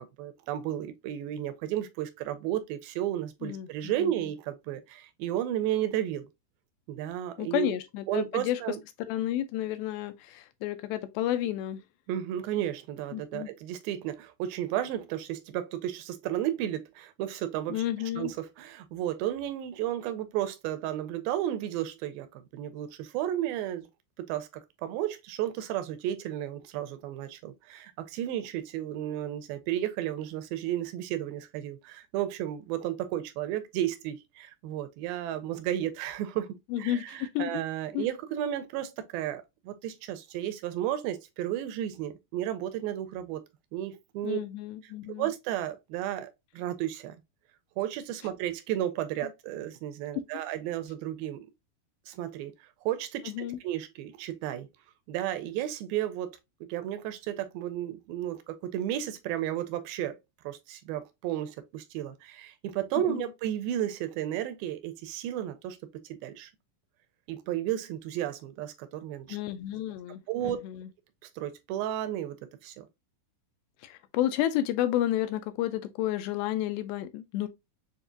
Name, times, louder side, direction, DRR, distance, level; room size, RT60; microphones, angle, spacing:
voice 1, 0.0-6.3 6.9-7.8 8.1-8.8 12.1-17.8 18.2-23.9 24.2-24.5 24.8-36.5 36.8-43.4 43.7-44.4 45.2-47.2 47.8-51.5 52.1-52.5 52.8-53.3 53.6-54.7 55.1-56.4 56.7-60.2 60.4-66.5 67.3-69.4 70.3-70.6 71.4-72.9, right 12 dB, 85° right, 2.4 m, -33 dB
voice 2, 3.4-4.1 7.4-8.8 9.1-11.8 13.1-13.5 17.7-18.3 36.7-37.6 37.9-38.1 44.2-45.3 50.3-50.4 53.3-53.6 63.1-63.3 69.3-70.9 73.8-77.5, left 13 dB, 80° left, 2.3 m, -31 dB
7.0 x 2.4 x 2.5 m
omnidirectional pair, 4.4 m